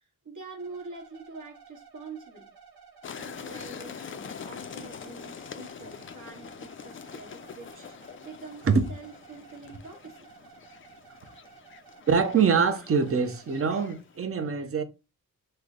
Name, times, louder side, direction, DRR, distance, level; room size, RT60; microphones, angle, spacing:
voice 1, 0.0-2.5 3.2-7.9 8.2-10.3, right 4 dB, 55° right, 1.3 m, -45 dB
sound 1, 0.6-13.7, right 6 dB, 80° right, 0.9 m, -54 dB
sound 2, 3.0-14.2, left 7 dB, 35° left, 0.4 m, -44 dB
voice 2, 12.1-14.8, right 5 dB, 40° right, 0.7 m, -24 dB
3.3 x 2.1 x 3.7 m
cardioid pair, 65°, 37 cm